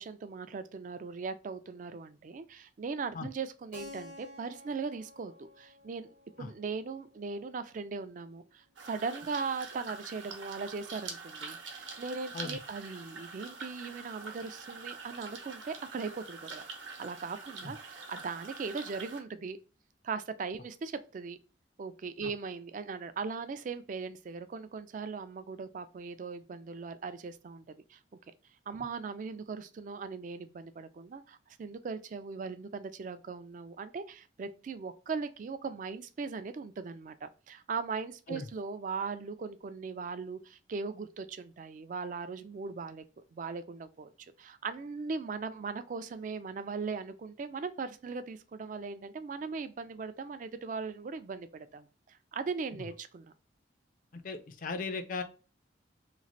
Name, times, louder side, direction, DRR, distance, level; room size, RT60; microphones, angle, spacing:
voice 1, 0.0-6.1 6.4-16.6 17.0-19.6 20.0-21.4 21.8-28.0 28.7-43.0 43.3-44.1 44.4-53.3, right 4 dB, 45° right, 0.3 m, -39 dB
Keyboard (musical), 3.7-8.3, left 2 dB, 85° left, 1.0 m, -53 dB
sound 1, 8.8-19.2, right 4 dB, 80° right, 0.8 m, -45 dB
voice 2, 54.1-55.2, left 3 dB, 45° left, 0.4 m, -37 dB
3.0 x 2.4 x 2.6 m
head